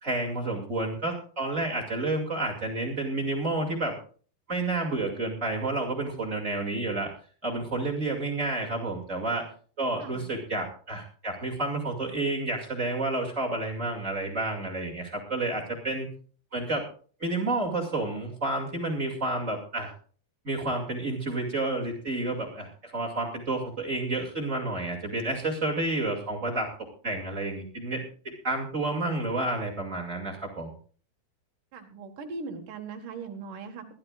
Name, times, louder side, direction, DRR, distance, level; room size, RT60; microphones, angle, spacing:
voice 1, 0.0-4.0 4.5-7.1 7.4-9.4 9.8-16.1 16.5-16.8 17.2-19.9 20.4-26.7 27.0-30.7, right 2 dB, 25° right, 0 dB, 1.8 m, -30 dB
voice 2, 10.0-10.3 31.7-33.9, right 4 dB, 60° right, 3 dB, 2.9 m, -39 dB
22.0 x 12.5 x 2.4 m, 0.42 s
omnidirectional pair, 4.9 m